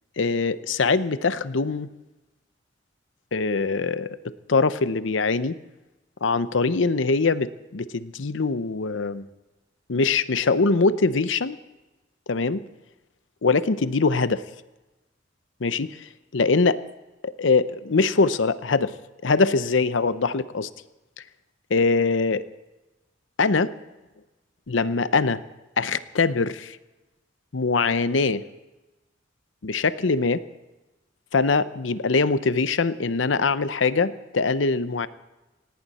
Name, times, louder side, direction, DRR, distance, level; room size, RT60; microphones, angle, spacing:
voice 1, 0.2-1.9 3.3-5.6 6.2-9.3 9.9-11.6 12.3-12.6 13.4-14.4 15.6-16.1 16.3-16.8 17.2-18.9 19.2-20.7 21.7-22.4 23.4-23.7 24.7-25.4 25.8-26.8 27.5-28.4 29.6-30.4 31.3-35.1, left 4 dB, 80° left, 14 dB, 0.7 m, -22 dB
18.5 x 17.5 x 4.2 m, 1.1 s
head